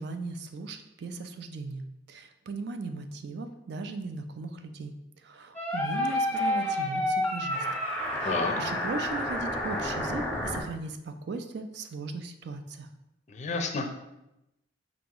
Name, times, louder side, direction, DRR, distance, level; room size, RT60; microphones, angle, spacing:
voice 1, 0.0-4.9 5.2-7.8 8.2-12.9, right 3 dB, 60° right, 8 dB, 0.4 m, -38 dB
sound 1, 5.6-10.6, left 1 dB, 5° left, 0.8 m, -29 dB
voice 2, 8.2-8.6 13.3-13.9, left 3 dB, 40° left, 5 dB, 0.5 m, -30 dB
4.8 x 2.9 x 3.7 m, 0.90 s
head